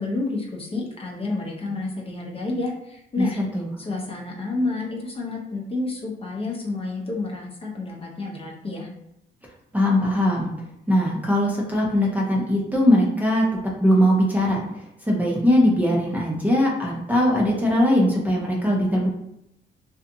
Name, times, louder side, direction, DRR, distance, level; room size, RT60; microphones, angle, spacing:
voice 1, 0.0-3.4 3.8-8.9, left 2 dB, 30° left, -2 dB, 0.7 m, -29 dB
voice 2, 3.2-3.7 9.7-10.5 10.9-13.4 13.8-14.6 15.0-19.1, left 1 dB, 10° right, -3 dB, 0.6 m, -20 dB
2.6 x 2.4 x 2.6 m, 0.83 s
cardioid pair, 90°, 20 cm